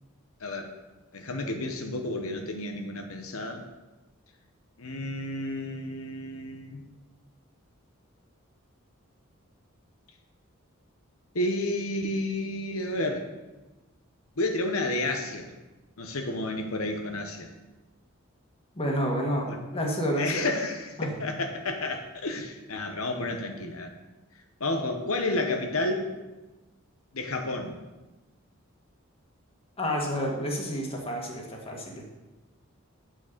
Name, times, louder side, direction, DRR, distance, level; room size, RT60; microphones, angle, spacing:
voice 1, 0.4-0.7 1.1-3.6 4.8-6.9 11.3-13.3 14.4-15.5 16.0-17.5 19.4-19.6 20.2-23.9 24.6-26.1 27.1-27.7, left 2 dB, 90° left, 4 dB, 1.1 m, -31 dB
voice 2, 18.7-20.5 21.0-21.1 29.8-32.0, equal, 25° left, 0 dB, 1.8 m, -29 dB
9.3 x 6.4 x 6.7 m, 1.1 s
head